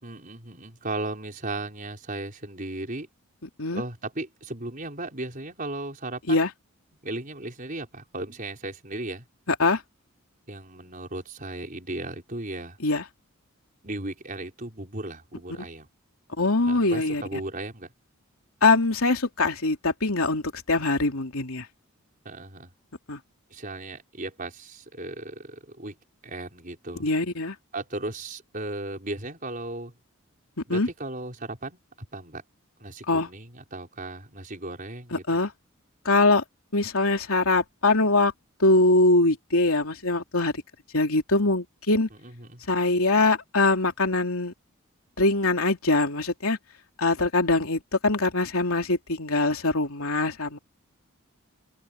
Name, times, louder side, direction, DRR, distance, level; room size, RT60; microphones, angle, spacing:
voice 1, 0.0-3.1 3.7-6.4 7.0-9.2 10.5-12.8 13.8-15.9 16.7-17.9 22.2-22.7 23.5-25.9 26.2-27.1 27.7-29.9 30.7-31.8 32.1-32.4 32.8-35.2 42.2-42.6, right 2 dB, 40° right, 5.1 m, -36 dB
voice 2, 9.5-9.8 12.8-13.0 16.4-17.4 18.6-21.7 23.1-23.2 27.0-27.5 30.7-30.9 33.1-33.3 35.1-35.5 36.0-36.4 36.7-38.3 38.6-40.5 40.9-42.1 42.7-44.5 45.2-46.6 47.0-50.6, left 2 dB, 80° left, 3.0 m, -23 dB
open air
head